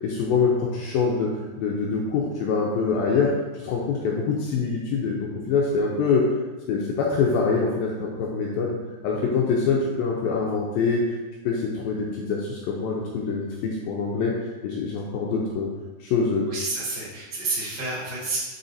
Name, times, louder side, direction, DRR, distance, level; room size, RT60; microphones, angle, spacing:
voice 1, 0.0-3.3 3.6-6.2 6.7-8.8 9.0-11.2 11.5-14.3 14.6-15.7 16.0-16.5, left 5 dB, 85° left, -2 dB, 2.1 m, -24 dB
voice 2, 16.5-18.4, right 3 dB, 40° right, -8 dB, 1.5 m, -29 dB
6.8 x 3.9 x 4.2 m, 1.3 s
omnidirectional pair, 4.8 m